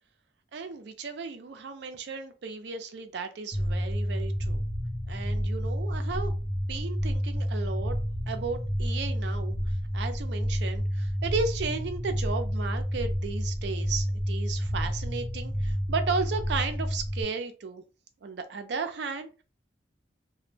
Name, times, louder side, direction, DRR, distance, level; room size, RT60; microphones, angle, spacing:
voice 1, 0.5-4.6 5.1-6.3 6.7-8.0 8.3-9.6 9.9-17.8 18.2-19.4, right 4 dB, 65° right, 0.4 m, -34 dB
sound 1, 3.5-17.2, equal, 5° right, 0.5 m, -30 dB
2.1 x 2.0 x 3.1 m
head